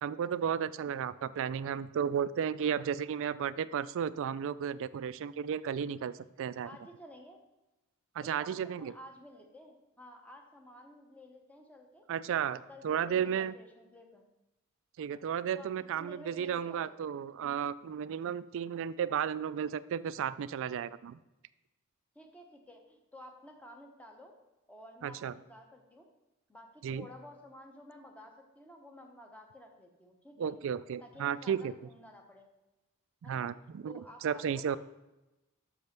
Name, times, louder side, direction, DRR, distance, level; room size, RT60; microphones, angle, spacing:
voice 1, 0.0-6.7 8.2-8.9 12.1-12.6 12.8-13.5 15.0-21.2 25.0-25.3 26.8-27.1 30.4-31.7 33.3-33.9 34.2-34.8, right 8 dB, 60° right, 16 dB, 0.3 m, -33 dB
voice 2, 6.6-7.4 8.2-12.1 12.4-14.3 15.5-17.0 22.1-24.4 24.7-26.1 26.5-30.5 31.0-32.5 33.2-33.5 33.9-34.8, left 1 dB, 5° left, 3 dB, 0.9 m, -52 dB
6.5 x 5.3 x 5.9 m, 1.0 s
head